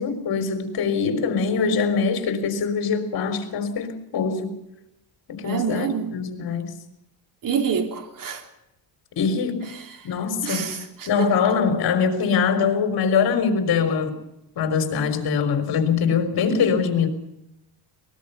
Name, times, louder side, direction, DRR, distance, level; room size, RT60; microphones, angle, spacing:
voice 1, 0.0-4.5 5.3-6.7 9.2-9.7 10.0-14.2 14.6-17.1, left 6 dB, 55° left, 4.1 m, -23 dB
voice 2, 5.4-6.1 7.4-8.4 10.4-11.3, right 6 dB, 45° right, 3.0 m, -27 dB
23.5 x 20.0 x 5.8 m
cardioid pair, 150°, 44 cm